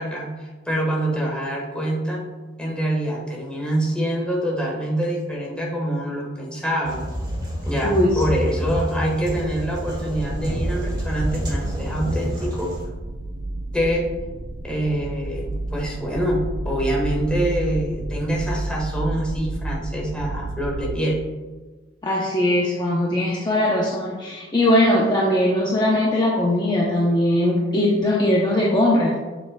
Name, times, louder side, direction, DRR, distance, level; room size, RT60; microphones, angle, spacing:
voice 1, 0.0-2.2 2.6-7.0 7.6-12.7 13.7-14.1 14.6-21.2, right 1 dB, 5° left, -2 dB, 1.3 m, -25 dB
sound 1, 6.8-12.8, equal, 20° right, 1.6 m, -28 dB
voice 2, 7.8-8.2 22.0-29.2, left 1 dB, 25° left, -4 dB, 0.7 m, -20 dB
sound 2, 9.2-21.0, right 2 dB, 55° right, 0.5 m, -31 dB
7.2 x 6.5 x 2.2 m, 1.3 s
head